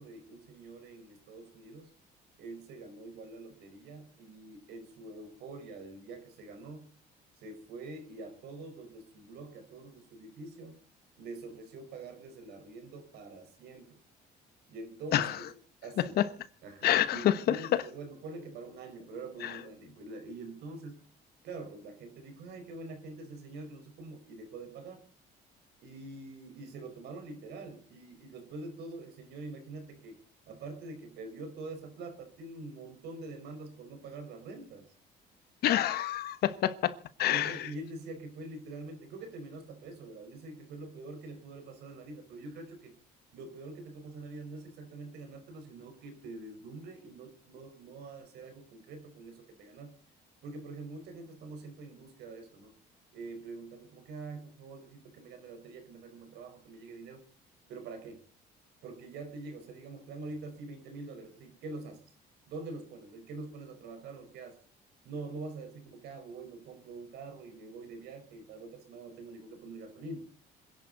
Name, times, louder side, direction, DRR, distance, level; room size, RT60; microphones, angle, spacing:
voice 1, 0.0-1.9 2.4-6.9 7.4-10.8 11.2-14.0 14.7-15.5 15.8-16.2 16.6-21.0 21.4-25.0 25.8-30.2 30.5-34.9 37.3-42.9 43.3-49.9 50.4-52.7 53.1-57.2 57.7-58.2 58.8-62.0 62.5-64.6 65.0-70.3, right 3 dB, 80° right, 6 dB, 4.9 m, -45 dB
voice 2, 16.8-17.8 19.4-19.5 35.6-36.9 37.2-37.6, left 12 dB, 70° left, 13 dB, 1.3 m, -27 dB
27.0 x 11.0 x 4.1 m, 0.41 s
cardioid pair, 110°, 17 cm